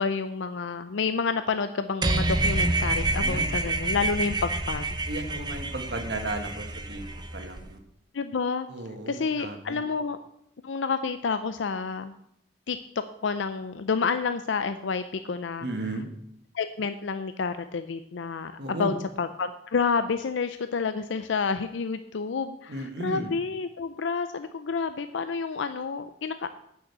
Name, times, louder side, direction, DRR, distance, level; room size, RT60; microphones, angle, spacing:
voice 1, 0.0-4.9 8.1-8.7 9.1-10.2 10.6-12.1 12.7-12.8 13.2-15.7 16.5-26.6, left 5 dB, 85° left, 10 dB, 0.5 m, -29 dB
sound 1, 2.0-7.6, right 2 dB, 25° right, 0.8 m, -28 dB
voice 2, 3.2-3.5 5.0-7.8 8.7-9.8 15.6-16.1 18.6-18.9 22.7-23.3, right 2 dB, 60° right, 5 dB, 1.6 m, -35 dB
8.7 x 6.5 x 8.0 m, 0.76 s
head